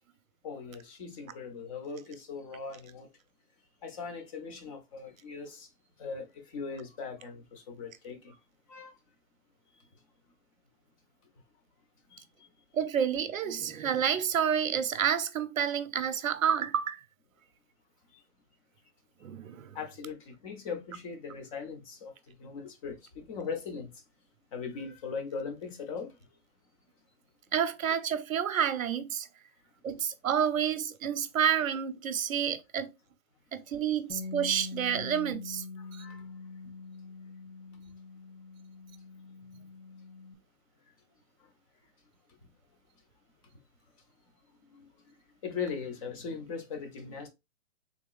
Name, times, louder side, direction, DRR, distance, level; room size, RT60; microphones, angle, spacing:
voice 1, 0.4-3.1 3.8-5.7 6.0-8.4 8.7-8.9 12.1-12.5 19.7-22.1 22.4-23.9 24.5-26.1 35.8-36.2 45.4-47.3, left 5 dB, 25° left, 0.7 m, -39 dB
voice 2, 12.7-17.0 19.2-19.8 27.5-29.3 29.8-32.9 33.5-35.6, right 8 dB, 70° right, 0.8 m, -29 dB
Bass guitar, 34.1-40.3, left 4 dB, 75° left, 0.9 m, -44 dB
3.7 x 2.9 x 2.3 m
hypercardioid pair, 145°, 42 cm